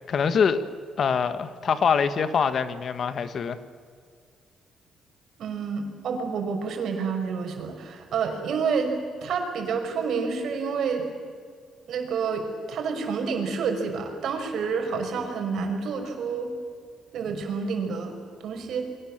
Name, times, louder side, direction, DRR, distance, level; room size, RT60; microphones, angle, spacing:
voice 1, 0.1-0.6 1.0-3.6, left 6 dB, 55° left, 12 dB, 1.6 m, -24 dB
voice 2, 5.4-11.1 11.9-16.5 17.1-18.2 18.4-18.8, right 5 dB, 70° right, 4 dB, 5.6 m, -29 dB
29.5 x 23.0 x 7.5 m, 2.1 s
cardioid pair, 90°, 0 cm